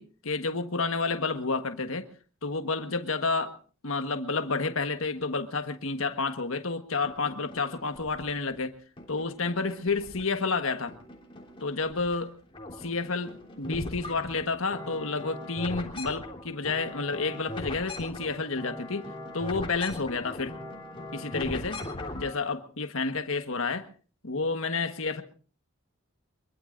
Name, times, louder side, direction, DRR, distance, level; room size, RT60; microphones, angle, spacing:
voice 1, 0.0-2.1 2.4-3.5 3.8-8.7 9.1-10.9 11.6-12.3 12.8-19.1 19.3-20.5 21.1-21.8 22.1-23.9 24.2-25.2, left 4 dB, 70° left, 7 dB, 1.5 m, -30 dB
sound 1, 7.0-8.5 9.0-10.5 10.9-12.2 12.5-22.4, left 1 dB, 25° left, 3.4 m, -40 dB
24.0 x 23.0 x 2.6 m, 0.38 s
head